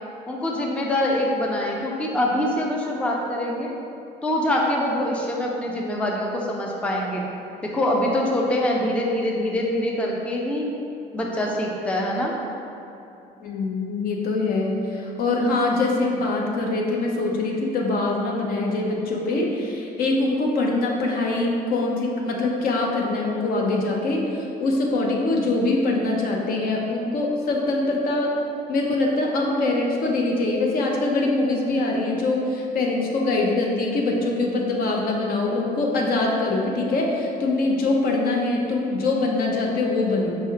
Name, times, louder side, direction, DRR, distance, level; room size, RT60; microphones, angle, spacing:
voice 1, 0.3-3.7 4.2-7.2 7.6-10.7 11.1-12.3, left 1 dB, 5° left, -2 dB, 0.4 m, -24 dB
voice 2, 13.4-28.4 28.7-40.4, left 2 dB, 60° left, -1 dB, 0.6 m, -23 dB
4.6 x 3.2 x 2.8 m, 2.8 s
cardioid pair, 110°, 17 cm